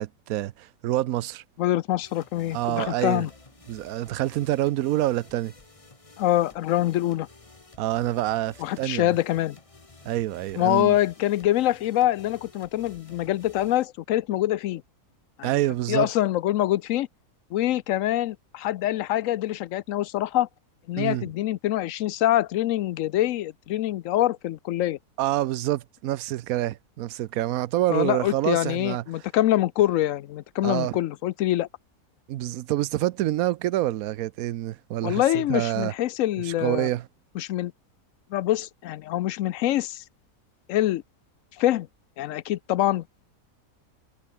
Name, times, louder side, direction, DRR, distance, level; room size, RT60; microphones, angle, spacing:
voice 1, 0.0-1.4 2.5-3.3 3.7-5.5 7.8-9.1 10.0-11.0 15.4-16.1 21.0-21.2 25.2-29.0 30.6-31.0 32.3-35.9 36.5-37.1, right 14 dB, 70° right, 1.0 m, -27 dB
voice 2, 1.6-3.3 6.2-7.3 8.6-9.6 10.6-14.8 15.4-15.5 15.9-17.1 17.5-20.5 20.9-25.0 27.9-31.7 35.0-36.9 37.4-37.7 38.3-40.0 40.7-41.0 41.6-41.9 42.2-43.2, left 14 dB, 70° left, 0.8 m, -25 dB
sound 1, 2.0-13.9, left 3 dB, 20° left, 1.5 m, -53 dB
omnidirectional pair, 1.6 m